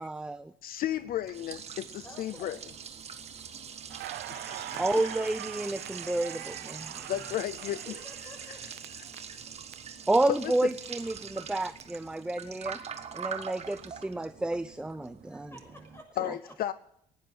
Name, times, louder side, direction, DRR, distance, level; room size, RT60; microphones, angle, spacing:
voice 1, 0.0-0.5 4.8-7.1 10.1-12.8 13.1-15.5, right 2 dB, 5° right, 11 dB, 0.5 m, -30 dB
voice 2, 0.6-2.6 4.3-5.3 7.1-7.8 8.5-8.6 9.0-9.1 10.3-10.7 16.2-16.7, left 12 dB, 60° left, 16 dB, 0.6 m, -34 dB
Liquid, 0.9-16.0, right 7 dB, 40° right, 1.6 m, -43 dB
voice 3, 2.0-2.6 7.6-8.8 15.3-16.5, left 1 dB, 15° left, 3 dB, 7.2 m, -51 dB
Crackle, 3.9-9.7 10.0-11.8, right 15 dB, 75° right, 0.7 m, -43 dB
17.5 x 10.0 x 7.9 m, 0.74 s
cardioid pair, 110°, 17 cm